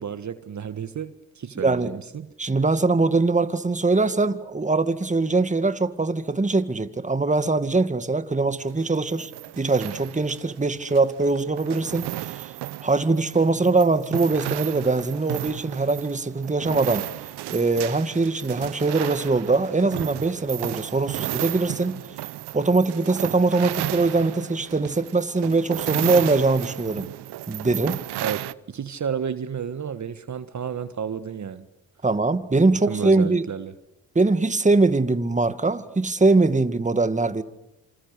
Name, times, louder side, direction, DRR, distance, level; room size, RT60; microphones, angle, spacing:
voice 1, 0.0-2.3 28.2-31.7 32.9-33.7, right 7 dB, 45° right, 1.6 m, -32 dB
voice 2, 1.6-2.0 2.4-12.5 12.8-17.1 17.5-22.0 22.5-27.1 27.5-28.0 32.0-33.5 34.2-37.4, right 3 dB, 15° right, 2.0 m, -22 dB
sound 1, 8.6-28.5, right 15 dB, 70° right, 0.9 m, -34 dB
27.5 x 27.0 x 6.7 m
supercardioid pair, 60°, 41 cm